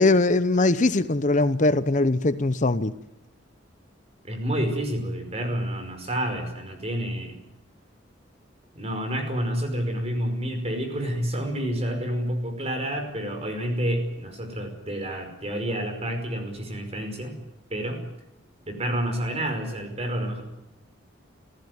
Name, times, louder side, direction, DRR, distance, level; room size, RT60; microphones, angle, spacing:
voice 1, 0.0-2.9, left 2 dB, 40° left, 13 dB, 0.8 m, -21 dB
voice 2, 4.2-7.4 8.8-17.4 17.7-18.0 18.7-20.4, equal, 35° right, 6 dB, 5.3 m, -29 dB
28.0 x 15.5 x 9.4 m, 0.91 s
head